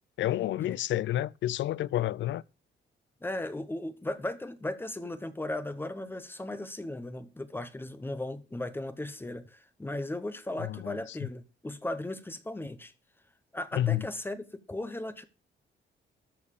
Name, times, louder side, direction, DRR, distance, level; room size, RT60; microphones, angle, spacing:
voice 1, 0.2-2.4 10.6-11.3 13.7-14.1, left 13 dB, 85° left, 0.5 m, -30 dB
voice 2, 3.2-12.9 13.5-15.2, left 1 dB, 10° left, 0.9 m, -36 dB
13.0 x 5.5 x 6.8 m
wide cardioid pair, 150°, 19 cm